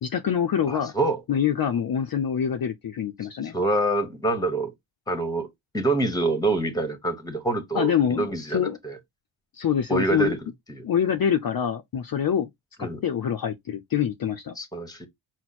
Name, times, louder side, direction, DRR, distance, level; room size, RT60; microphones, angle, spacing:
voice 1, 0.0-0.9 1.3-3.5 7.7-8.8 9.5-10.3 10.8-12.5 12.8-14.6, left 8 dB, 50° left, 0.5 m, -25 dB
voice 2, 0.7-1.2 3.5-4.7 5.1-9.0 9.9-10.8 12.8-13.0 14.5-15.1, right 2 dB, 10° left, 1.1 m, -26 dB
6.1 x 2.1 x 4.1 m
wide cardioid pair, 150°, 47 cm